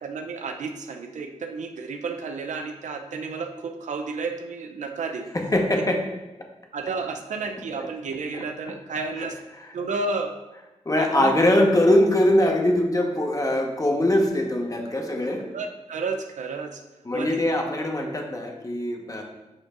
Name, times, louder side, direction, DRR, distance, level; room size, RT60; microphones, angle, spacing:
voice 1, 0.0-5.3 6.7-9.4 9.7-10.3 11.0-11.3 15.5-16.8 17.1-17.4, right 4 dB, 80° right, 5 dB, 0.6 m, -31 dB
voice 2, 5.3-6.1 6.4-6.5 9.2-9.3 10.8-15.5 17.0-19.2, left 1 dB, 30° left, 1 dB, 1.2 m, -22 dB
8.5 x 5.2 x 2.5 m, 1.0 s
cardioid pair, 50°, 12 cm